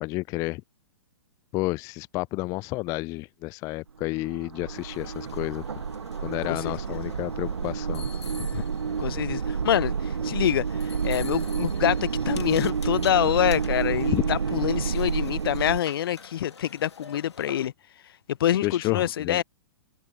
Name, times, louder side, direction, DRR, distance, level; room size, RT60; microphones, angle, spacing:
voice 1, 0.0-0.6 1.5-5.6 6.2-8.1 14.1-14.2 18.6-19.4, left 21 dB, 25° left, 0.3 m, -30 dB
sound 1, 3.9-15.8, right 6 dB, 75° right, 1.3 m, -29 dB
sound 2, 4.7-17.7, left 5 dB, 80° left, 2.4 m, -47 dB
voice 2, 6.4-7.0 8.5-8.6 9.0-17.7 18.4-19.4, left 11 dB, 60° left, 0.8 m, -26 dB
figure-of-eight pair, 115°, 14 cm